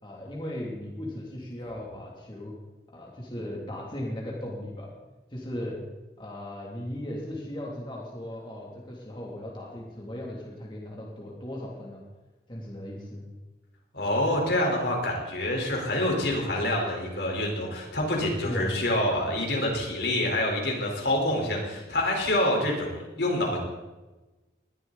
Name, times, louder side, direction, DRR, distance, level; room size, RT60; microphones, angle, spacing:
voice 1, 0.0-2.5 2.9-4.9 5.3-5.8 6.2-12.0 12.5-13.3 18.4-18.7, left 1 dB, 25° left, -3 dB, 2.8 m, -37 dB
voice 2, 13.9-23.6, left 1 dB, 70° left, -1 dB, 4.4 m, -27 dB
20.5 x 13.0 x 4.1 m, 1.1 s
head